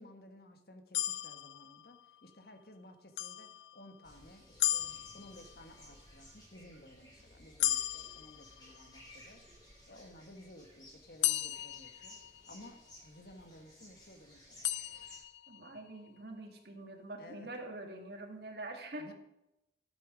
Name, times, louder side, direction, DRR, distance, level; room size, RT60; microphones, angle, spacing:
voice 1, 0.0-4.9 5.1-9.4 9.9-12.2 12.5-14.6 17.2-17.5 19.0-19.1, left 1 dB, 55° left, 6 dB, 1.4 m, -55 dB
sound 1, 0.9-2.3 3.2-4.1 4.6-5.8 7.6-9.1 11.2-12.8 14.6-15.8, left 13 dB, 75° left, 0.5 m, -36 dB
sound 2, 4.0-15.2, left 1 dB, 25° left, 4.5 m, -57 dB
voice 2, 15.5-19.1, right 2 dB, 60° right, 4 dB, 1.8 m, -45 dB
12.5 x 8.6 x 5.1 m, 0.87 s
head